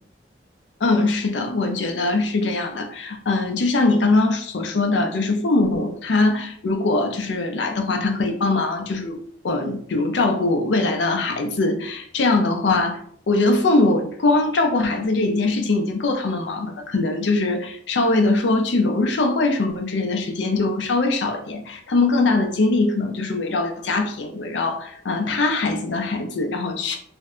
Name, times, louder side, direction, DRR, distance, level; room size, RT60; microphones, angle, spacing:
voice 1, 0.8-9.2 9.4-13.0 13.3-27.0, left 2 dB, 75° left, 4 dB, 0.5 m, -22 dB
2.6 x 2.1 x 3.6 m, 0.63 s
head